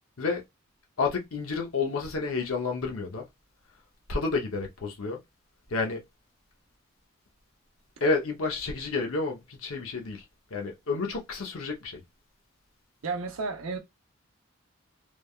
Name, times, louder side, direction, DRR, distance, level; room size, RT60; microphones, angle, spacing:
voice 1, 1.0-3.3 4.1-5.2 5.7-6.0 8.0-10.2 10.5-12.0, left 4 dB, 80° left, 0.7 m, -30 dB
voice 2, 13.0-13.8, right 4 dB, 80° right, 0.7 m, -32 dB
3.2 x 2.2 x 2.3 m
head